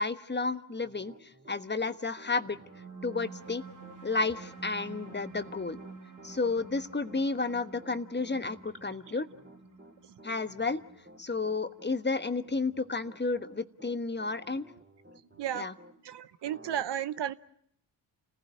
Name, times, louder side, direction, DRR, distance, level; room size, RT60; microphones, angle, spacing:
voice 1, 0.0-2.6 3.0-3.6 4.0-5.8 6.2-9.3 10.2-10.8 11.2-14.7 15.5-15.7, left 3 dB, 20° left, 11 dB, 1.3 m, -32 dB
Piano, 0.8-16.0 16.4-16.8, right 1 dB, 20° right, 3.5 m, -54 dB
sound 1, 2.4-13.3, right 4 dB, 40° right, 3.8 m, -50 dB
voice 2, 16.0-17.3, right 10 dB, 55° right, 15 dB, 0.9 m, -33 dB
29.5 x 15.5 x 9.1 m, 0.72 s
supercardioid pair, 50°, 49 cm